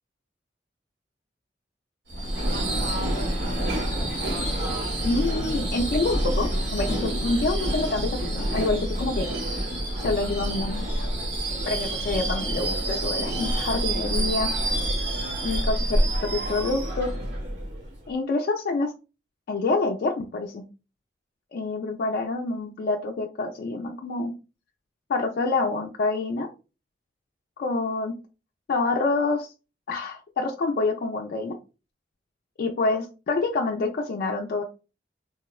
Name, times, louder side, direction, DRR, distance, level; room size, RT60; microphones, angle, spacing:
Subway metro underground / Screech, 2.1-18.0, right 1 dB, 85° right, 1.0 m, -27 dB
voice 1, 5.0-9.3 10.0-10.8 11.7-14.5 15.4-17.1 18.1-18.9 19.5-20.6 21.5-24.3 25.1-26.5 27.6-28.2 28.7-29.5 29.9-31.6 32.6-34.6, left 3 dB, 55° left, 1 dB, 0.3 m, -27 dB
3.4 x 2.1 x 2.3 m, 0.32 s
head